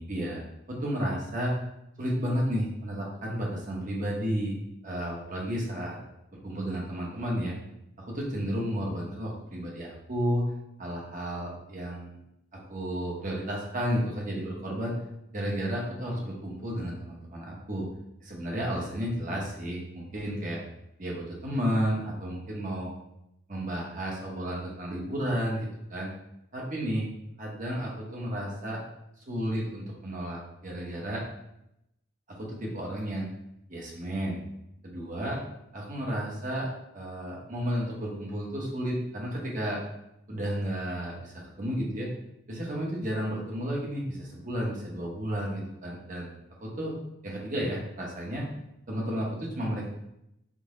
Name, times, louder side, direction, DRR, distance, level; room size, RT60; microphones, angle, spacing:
voice 1, 0.0-1.5 2.0-4.6 4.8-6.0 6.4-7.5 8.1-10.4 10.8-12.2 12.7-14.9 15.3-17.9 18.2-20.6 21.0-22.9 23.5-26.1 26.5-27.1 27.4-28.8 29.3-31.2 32.4-33.3 33.7-34.4 34.8-35.4 35.7-36.7 36.9-39.8 40.3-42.1 42.5-46.3 46.6-46.9 47.2-48.5 48.9-49.9, equal, 35° right, -3 dB, 0.8 m, -32 dB
3.8 x 2.1 x 3.6 m, 0.82 s
head